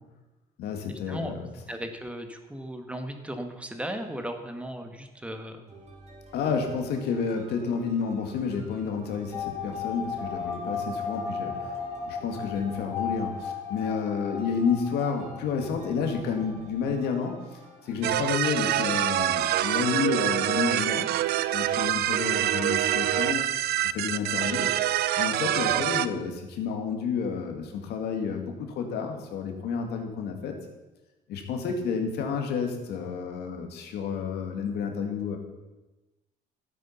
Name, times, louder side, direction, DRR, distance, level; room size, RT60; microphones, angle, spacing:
voice 1, 0.6-1.4 6.3-11.7 12.0-17.4 17.8-21.1 21.5-23.4 23.9-24.7 25.2-30.6 31.3-35.4, left 6 dB, 75° left, 4 dB, 2.2 m, -30 dB
voice 2, 1.7-5.6 25.7-25.8, equal, 5° right, 6 dB, 1.3 m, -36 dB
sound 1, 5.7-18.6, right 2 dB, 45° right, 3.7 m, -50 dB
sound 2, 9.3-17.8 18.1-18.2 18.4-18.5, left 5 dB, 20° left, 2.4 m, -36 dB
sound 3, 18.0-26.1, right 13 dB, 70° right, 0.5 m, -26 dB
12.0 x 8.5 x 5.7 m, 1.1 s
cardioid pair, 110°, 17 cm